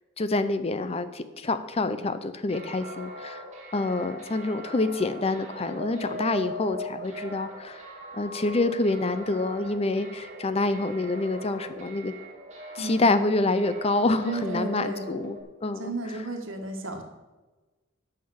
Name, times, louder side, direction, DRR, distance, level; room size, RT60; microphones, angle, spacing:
voice 1, 0.2-3.4 3.7-7.8 8.2-12.1 12.7-15.9, left 2 dB, 30° left, 12 dB, 0.5 m, -27 dB
sound 1, 2.5-15.4, equal, 35° right, 2.3 m, -41 dB
voice 2, 12.8-13.1 14.2-15.2 15.8-17.0, right 2 dB, 75° right, 4 dB, 1.6 m, -33 dB
9.6 x 5.8 x 7.2 m, 1.2 s
head